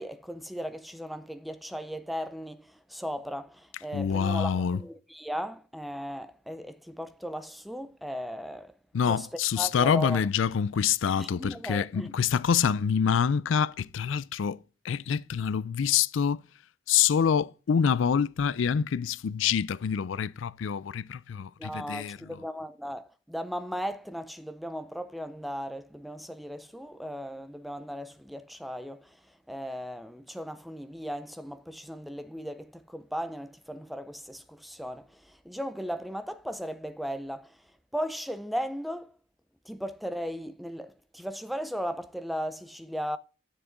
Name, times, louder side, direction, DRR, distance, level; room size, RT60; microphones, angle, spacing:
voice 1, 0.0-8.8 9.1-9.3 9.6-10.2 11.2-12.1 21.6-37.6 37.9-39.2 39.7-43.2, equal, ahead, 0.4 m, -37 dB
voice 2, 3.9-4.8 8.9-14.6 14.8-16.4 16.9-22.2, left 7 dB, 80° left, 0.4 m, -26 dB
9.7 x 7.4 x 3.8 m
head